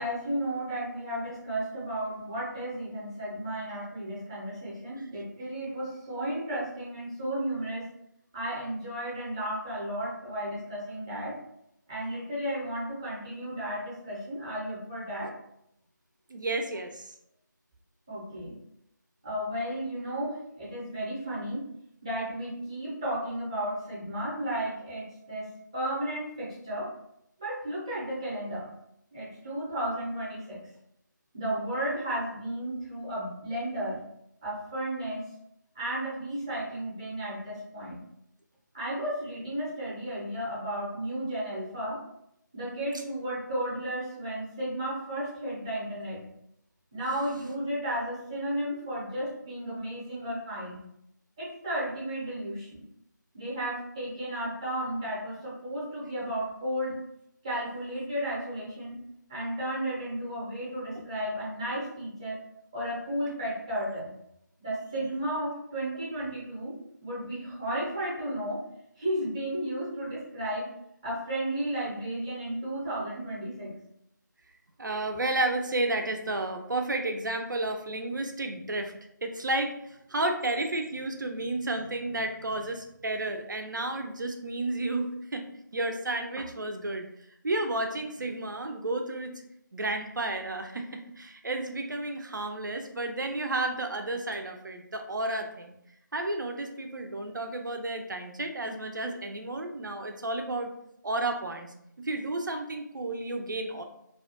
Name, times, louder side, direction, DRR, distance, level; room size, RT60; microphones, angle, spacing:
voice 1, 0.0-7.9 8.3-11.4 11.9-15.3 18.1-18.6 19.2-21.7 22.0-26.9 27.4-28.7 29.1-30.6 31.3-34.0 34.4-35.3 35.8-38.0 38.7-42.0 42.5-46.2 46.9-50.8 51.4-52.8 53.3-56.9 57.4-59.0 59.3-62.4 62.7-64.1 64.6-66.7 67.0-68.6 69.0-70.7 71.0-73.8, right 1 dB, 15° right, -7 dB, 0.5 m, -33 dB
voice 2, 16.3-17.1 60.9-61.0 74.8-78.9 79.2-85.5 85.7-87.1 87.4-89.3 89.7-95.8 96.1-100.7 101.0-103.8, right 2 dB, 75° right, 5 dB, 0.4 m, -32 dB
2.3 x 2.1 x 2.7 m, 0.77 s
figure-of-eight pair, 160°, 10 cm